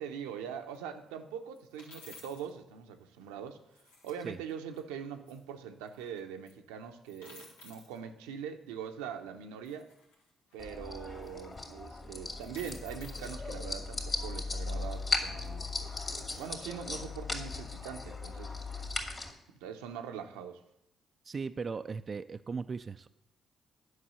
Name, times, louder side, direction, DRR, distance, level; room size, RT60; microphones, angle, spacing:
voice 1, 0.0-3.6 4.0-9.9 10.5-18.5 19.5-20.6, right 8 dB, 80° right, 6 dB, 0.7 m, -42 dB
sound 1, 0.7-0.8 1.5-2.5 3.7-4.8 5.3-5.4 5.9-6.2 6.5-6.6 7.1-8.0 9.6-10.6 11.2-11.9 12.3-13.3 14.6-16.5, left 3 dB, 85° left, 1.5 m, -55 dB
sound 2, 10.6-19.3, left 3 dB, 40° left, 2.3 m, -37 dB
voice 2, 21.2-23.1, right 5 dB, 45° right, 10 dB, 0.3 m, -37 dB
9.7 x 5.4 x 6.8 m, 0.83 s
hypercardioid pair, 45°, 0 cm